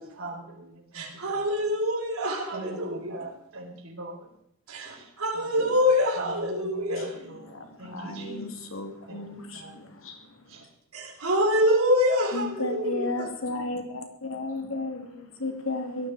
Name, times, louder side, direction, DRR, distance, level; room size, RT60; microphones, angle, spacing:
voice 1, 0.0-1.4 2.5-4.3 4.8-5.1 5.6-5.7 6.2-8.4 9.1-9.8 10.5-10.6, right 2 dB, 70° right, 0 dB, 4.7 m, -41 dB
voice 2, 0.9-3.3 4.7-7.2 10.9-13.3, left 1 dB, 85° right, 2 dB, 3.4 m, -26 dB
voice 3, 7.0-10.7 12.3-16.1, left 2 dB, 65° left, 4 dB, 2.7 m, -34 dB
17.5 x 13.5 x 5.0 m, 0.75 s
head